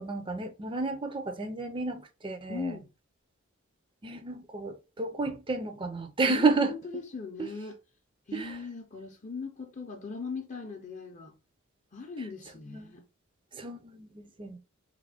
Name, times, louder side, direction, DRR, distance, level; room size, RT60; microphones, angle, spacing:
voice 1, 0.0-2.8 4.0-6.7 7.4-7.5 8.3-8.6 12.7-12.9 13.5-14.6, right 3 dB, 25° right, 0.5 m, -31 dB
voice 2, 2.5-2.9 6.3-7.8 8.3-11.4 11.9-13.1, left 4 dB, 35° left, 0.6 m, -39 dB
3.6 x 2.2 x 3.3 m
head